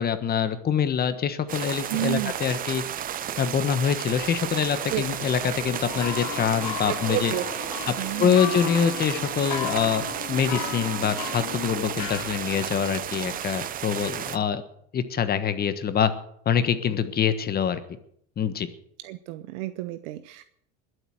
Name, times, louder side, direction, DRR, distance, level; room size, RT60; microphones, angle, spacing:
voice 1, 0.0-2.8 3.4-7.3 7.9-14.6 14.9-16.1 16.4-17.8 18.4-18.7, left 7 dB, 25° left, 11 dB, 1.4 m, -25 dB
sound 1, 1.5-14.4, right 10 dB, 25° right, 0.5 m, -33 dB
voice 2, 1.9-2.4 4.9-5.0 6.8-7.5 8.0-8.4 19.0-20.4, right 17 dB, 75° right, 12 dB, 0.9 m, -31 dB
Mechanical fan, 4.6-10.0, left 3 dB, 5° left, 2.7 m, -45 dB
sound 2, 5.8-12.7, left 11 dB, 50° left, 1.8 m, -36 dB
21.0 x 8.1 x 7.9 m, 0.69 s
supercardioid pair, 145°, 36 cm